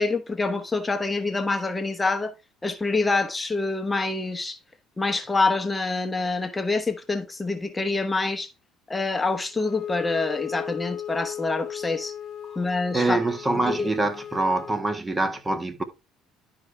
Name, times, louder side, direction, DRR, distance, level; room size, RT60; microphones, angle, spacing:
voice 1, 0.0-2.3 2.6-4.6 5.0-8.5 8.9-12.1 12.6-13.2 13.7-13.9, left 3 dB, 20° left, 1.1 m, -26 dB
Wind instrument woodwind instrument, 9.5-14.8, left 10 dB, 50° left, 1.1 m, -36 dB
voice 2, 12.9-15.8, right 2 dB, 20° right, 1.5 m, -25 dB
12.0 x 4.9 x 3.4 m
supercardioid pair, 85°, 0 cm